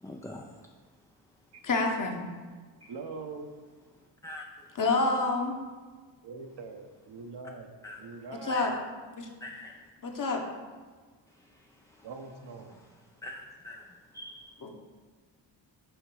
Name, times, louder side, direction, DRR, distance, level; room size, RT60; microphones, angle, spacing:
voice 1, 0.0-0.5 2.8-2.9 4.2-4.4 7.8-8.0 8.5-8.8 9.4-9.8 11.4-12.1 13.2-13.9 14.1-14.6, left 1 dB, 5° left, 1 dB, 0.3 m, -44 dB
voice 2, 1.6-2.2 4.8-5.6 8.4-8.7 9.2-9.3 10.0-10.4 14.6-14.7, left 3 dB, 45° left, 2 dB, 1.1 m, -27 dB
voice 3, 2.9-3.5 6.2-7.7 8.0-8.6 12.0-12.8, right 4 dB, 60° right, 4 dB, 0.9 m, -42 dB
6.5 x 3.8 x 4.8 m, 1.4 s
cardioid pair, 70°, 46 cm